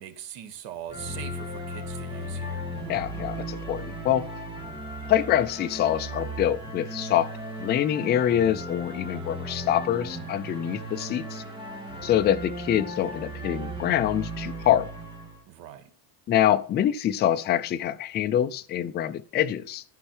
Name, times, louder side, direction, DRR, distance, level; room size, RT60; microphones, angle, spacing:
voice 1, 0.0-2.6 15.5-15.9, right 10 dB, 65° right, 1.6 m, -41 dB
sound 1, 0.9-15.4, right 1 dB, 10° right, 1.9 m, -36 dB
voice 2, 2.9-4.2 5.1-7.3 7.6-11.4 12.0-14.9 16.3-19.8, left 11 dB, 25° left, 0.4 m, -25 dB
13.5 x 5.6 x 4.4 m
cardioid pair, 165°, 45 cm